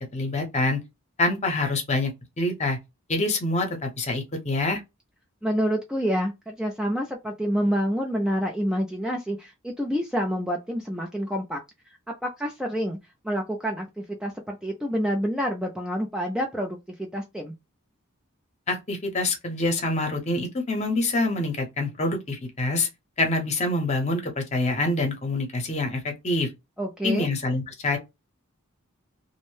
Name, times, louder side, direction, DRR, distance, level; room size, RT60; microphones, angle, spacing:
voice 1, 0.1-0.8 1.2-2.1 2.4-2.8 3.1-4.8 18.7-22.9 23.2-26.5 27.0-28.0, left 2 dB, 30° left, 0.8 m, -26 dB
voice 2, 5.4-11.6 12.2-13.0 13.2-17.6 26.8-27.3, equal, 5° right, 0.3 m, -28 dB
2.6 x 2.1 x 3.0 m
head